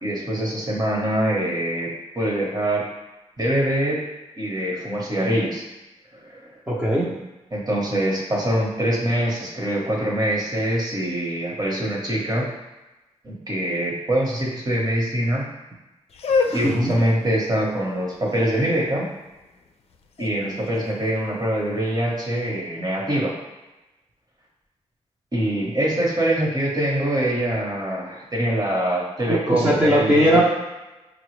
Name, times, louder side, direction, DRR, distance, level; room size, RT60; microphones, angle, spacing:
voice 1, 0.0-2.9 3.4-4.0 4.4-5.6 6.1-6.4 7.5-12.5 13.2-15.4 16.5-19.1 20.2-23.3 25.3-30.4, right 1 dB, 35° right, -2 dB, 1.1 m, -24 dB
voice 2, 6.7-7.1 16.6-16.9 29.3-30.4, equal, 15° right, -7 dB, 0.7 m, -19 dB
sound 1, 16.1-22.0, left 4 dB, 55° left, 0.4 m, -30 dB
5.5 x 2.0 x 3.2 m, 1.1 s
cardioid pair, 65°, 12 cm